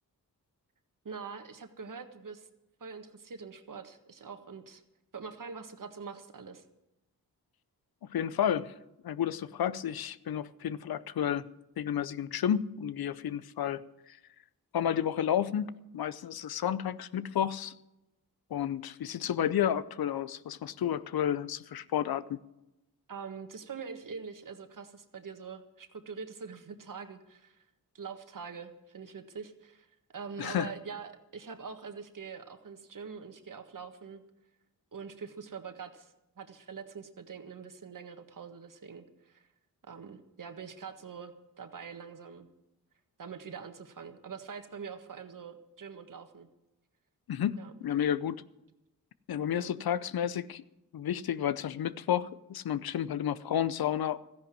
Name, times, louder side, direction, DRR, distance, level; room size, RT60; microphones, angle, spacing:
voice 1, 1.0-2.5 2.8-4.8 5.1-6.6 23.1-27.6 27.9-29.9 30.1-34.2 34.9-39.5 39.9-42.5 43.2-46.5 47.6-47.7 49.5-49.7, right 5 dB, 60° right, 1.6 m, -44 dB
voice 2, 8.1-8.7 9.0-11.5 11.8-14.2 14.7-17.8 18.5-22.4 30.4-30.7 47.3-48.4 49.3-50.6 50.9-54.2, left 9 dB, 90° left, 0.6 m, -31 dB
14.0 x 10.5 x 7.5 m
cardioid pair, 65°, 36 cm